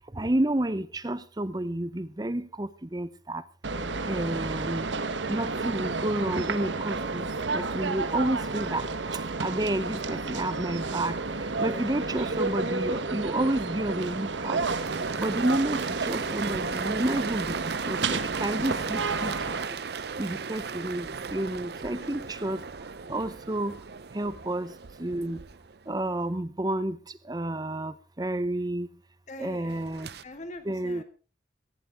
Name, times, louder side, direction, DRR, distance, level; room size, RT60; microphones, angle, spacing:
voice 1, 0.1-3.4 4.1-4.9 5.3-7.3 7.5-8.8 9.4-11.2 11.6-14.6 15.2-17.5 17.9-19.3 20.2-22.6 23.1-23.8 24.1-24.7 25.0-25.4 25.9-27.0 27.3-28.9 29.4-30.1 30.7-31.0, right 1 dB, 20° right, 15 dB, 0.8 m, -30 dB
sound 1, 3.6-19.7, right 3 dB, 85° right, 1.2 m, -31 dB
sound 2, 14.7-26.2 29.7-30.2, right 6 dB, 60° right, 0.7 m, -37 dB
voice 2, 18.6-18.9 21.9-22.2 29.3-29.8 30.2-31.0, left 1 dB, 40° left, 8 dB, 1.9 m, -43 dB
18.0 x 15.5 x 3.5 m, 0.35 s
head